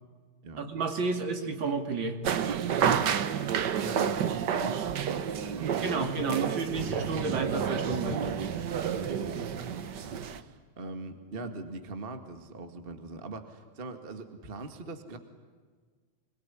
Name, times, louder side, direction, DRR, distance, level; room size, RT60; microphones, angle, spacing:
voice 1, 0.6-2.2 5.8-8.3, right 4 dB, 40° right, 6 dB, 2.7 m, -31 dB
sound 1, 2.2-10.4, right 8 dB, 85° right, 0.9 m, -30 dB
voice 2, 3.8-6.4 8.5-15.2, right 3 dB, 20° right, 7 dB, 1.6 m, -42 dB
sound 2, 6.7-10.3, right 2 dB, 60° right, 4.2 m, -41 dB
26.5 x 22.0 x 9.9 m, 1.5 s
omnidirectional pair, 3.5 m